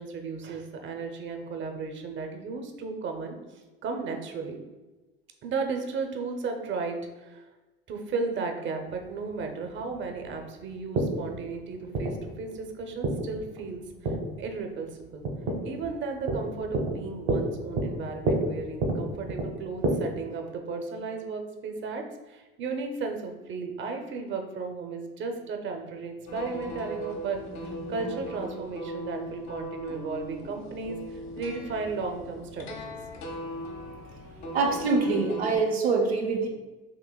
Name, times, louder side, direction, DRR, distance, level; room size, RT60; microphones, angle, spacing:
voice 1, 0.0-4.6 5.4-7.5 7.9-15.3 15.6-33.0, right 4 dB, 40° right, 4 dB, 0.7 m, -35 dB
sound 1, 8.9-19.9, right 2 dB, 65° right, 1.0 m, -31 dB
sound 2, 26.3-35.6, equal, 60° left, 1.0 m, -39 dB
voice 2, 34.5-36.5, right 4 dB, 90° right, 0 dB, 0.7 m, -24 dB
6.0 x 2.8 x 2.2 m, 1.2 s
hypercardioid pair, 70°, 31 cm